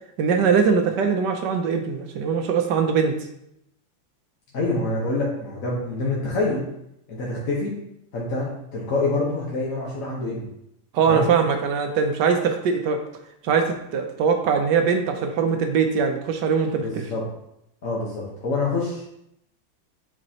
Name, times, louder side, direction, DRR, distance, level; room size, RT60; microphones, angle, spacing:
voice 1, 0.2-3.2 10.9-13.0 13.4-17.1, right 6 dB, 70° right, 5 dB, 1.1 m, -21 dB
voice 2, 4.5-6.7 7.1-7.7 8.1-10.5 11.1-11.3 16.8-17.2 17.8-19.1, left 2 dB, 45° left, -5 dB, 1.3 m, -26 dB
7.9 x 5.2 x 2.8 m, 0.79 s
omnidirectional pair, 2.3 m